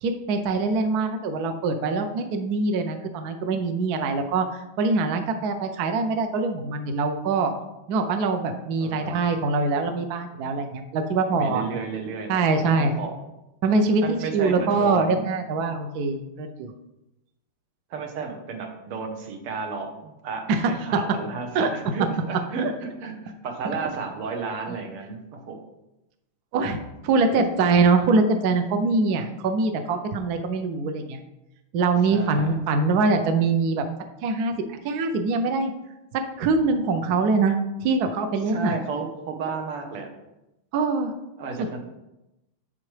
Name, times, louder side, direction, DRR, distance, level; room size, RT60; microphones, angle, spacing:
voice 1, 0.0-7.5 7.9-11.6 12.3-13.0 13.6-16.7 20.5-21.0 21.5-21.7 22.6-22.7 26.5-31.2 31.7-33.8 34.2-34.5 34.8-35.7 36.1-37.6 37.8-38.7 40.7-41.1 41.6-41.8, right 3 dB, 75° right, 6 dB, 0.9 m, -23 dB
voice 2, 8.8-9.2 11.3-13.2 14.0-15.2 17.9-25.6 32.1-32.6 37.1-37.2 38.5-40.1 41.4-41.8, right 4 dB, 90° right, 3 dB, 2.0 m, -33 dB
7.7 x 7.3 x 3.2 m, 0.93 s
omnidirectional pair, 2.4 m